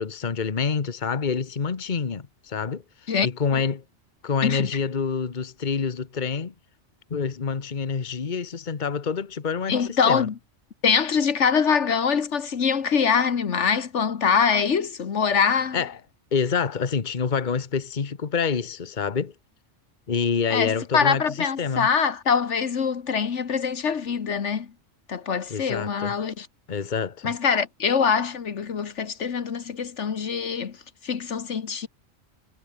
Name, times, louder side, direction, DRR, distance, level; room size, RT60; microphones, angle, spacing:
voice 1, 0.0-2.8 3.2-3.8 4.2-6.5 7.1-9.8 10.1-10.3 15.7-15.9 16.3-19.3 20.1-21.9 25.5-26.1 26.7-27.3, left 6 dB, 40° left, 1.4 m, -27 dB
voice 2, 9.7-10.4 10.8-15.8 20.5-24.7 25.1-26.5 27.2-30.8 31.0-31.9, left 6 dB, 70° left, 1.6 m, -24 dB
omnidirectional pair, 1.2 m